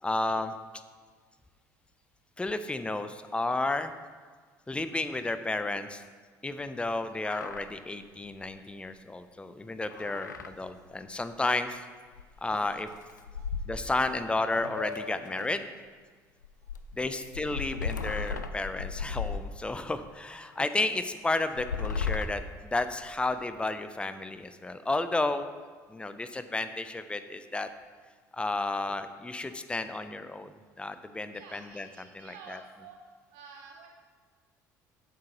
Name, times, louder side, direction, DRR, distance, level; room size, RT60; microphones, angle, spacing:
voice 1, 0.0-0.5 2.4-3.9 4.7-6.0 6.4-11.8 12.4-12.9 13.7-15.6 17.0-25.5 25.9-27.7 28.3-32.6, left 2 dB, 10° left, 10 dB, 0.6 m, -32 dB
sound 1, 7.1-7.7 8.0-8.1 8.4-8.5 9.9-10.5 10.9-11.0 12.1-12.2 12.6-14.1 14.5-15.6 16.4-19.9 20.5-20.6 21.4-23.3, left 5 dB, 90° left, 0.4 m, -36 dB
voice 2, 31.3-33.0 33.3-33.9, right 5 dB, 65° right, 1 dB, 0.8 m, -50 dB
12.0 x 7.5 x 3.0 m, 1.5 s
figure-of-eight pair, 55°, 9 cm